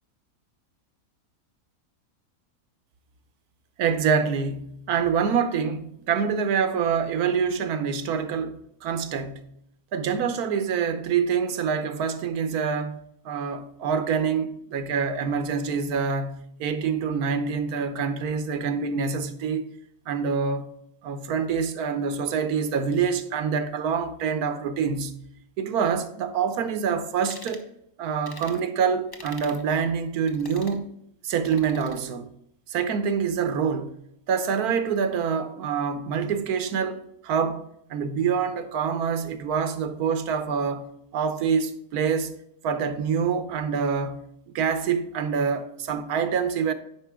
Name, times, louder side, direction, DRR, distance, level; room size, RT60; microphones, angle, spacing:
voice 1, 3.8-9.5 9.9-13.0 13.2-19.7 20.1-20.7 21.0-25.2 25.6-27.6 28.0-30.9 31.2-32.3 32.7-34.0 34.3-40.9 41.1-42.4 42.6-44.3 44.5-46.7, right 6 dB, 85° right, 1.3 m, -26 dB
sound 1, 27.2-27.7 28.3-28.6 29.1-29.6 30.3-30.8 31.5-32.0, left 2 dB, 20° left, 0.6 m, -44 dB
9.8 x 5.3 x 3.5 m
omnidirectional pair, 1.6 m